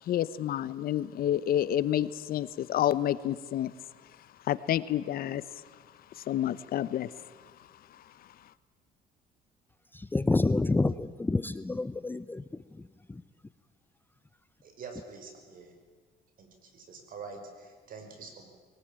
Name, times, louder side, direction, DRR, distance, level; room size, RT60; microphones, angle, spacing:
voice 1, 0.0-3.7 4.0-4.1 4.4-5.6 6.1-7.5 7.9-8.3, left 11 dB, 60° left, 17 dB, 0.9 m, -30 dB
voice 2, 9.9-13.2, left 2 dB, 10° left, 15 dB, 0.6 m, -29 dB
voice 3, 14.6-15.7 16.4-18.5, right 4 dB, 55° right, 6 dB, 5.3 m, -46 dB
22.5 x 19.0 x 8.8 m, 1.5 s
cardioid pair, 110°, 17 cm